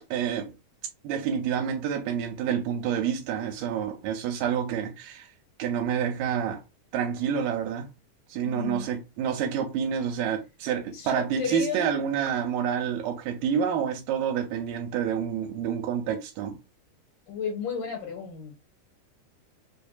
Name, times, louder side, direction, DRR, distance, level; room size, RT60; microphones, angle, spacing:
voice 1, 0.1-0.5 1.0-5.3 5.6-6.6 6.9-7.9 8.3-16.6, right 8 dB, 85° right, 2.1 m, -28 dB
voice 2, 8.4-8.8 10.9-12.0 17.3-18.5, left 6 dB, 75° left, 2.6 m, -33 dB
5.2 x 2.6 x 2.3 m
omnidirectional pair, 3.7 m